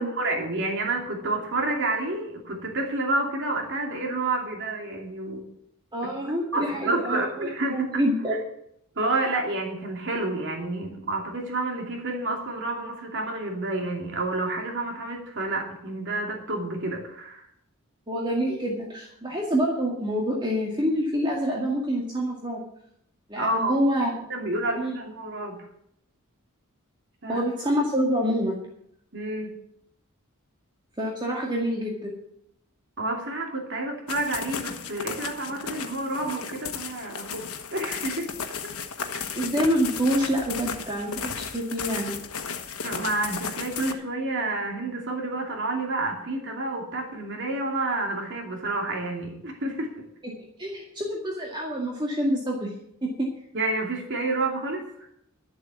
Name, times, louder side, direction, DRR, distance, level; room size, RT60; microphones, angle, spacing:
voice 1, 0.0-5.5 6.2-8.0 9.0-17.5 23.4-23.8 24.3-25.7 27.2-27.4 29.1-29.5 33.0-38.3 38.6-38.7 42.8-50.1 53.5-55.1, right 2 dB, 55° right, 1 dB, 2.5 m, -29 dB
voice 2, 5.9-8.4 18.1-22.6 23.3-24.1 24.8-25.0 27.3-28.6 31.0-32.1 39.3-42.2 50.2-52.7 53.0-53.3, equal, 20° right, -2 dB, 2.2 m, -27 dB
sound 1, 34.1-43.9, left 6 dB, 90° left, 1.3 m, -35 dB
12.5 x 7.8 x 8.2 m, 0.72 s
head